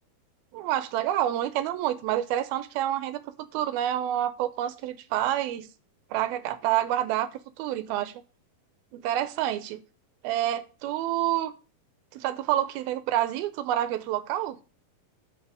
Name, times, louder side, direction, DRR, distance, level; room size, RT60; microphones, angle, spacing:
voice 1, 0.5-5.7 6.1-7.3 7.6-8.2 8.9-9.8 10.2-11.5 12.1-14.6, right 12 dB, 85° right, 2.7 m, -28 dB
11.0 x 6.4 x 3.5 m
omnidirectional pair, 4.2 m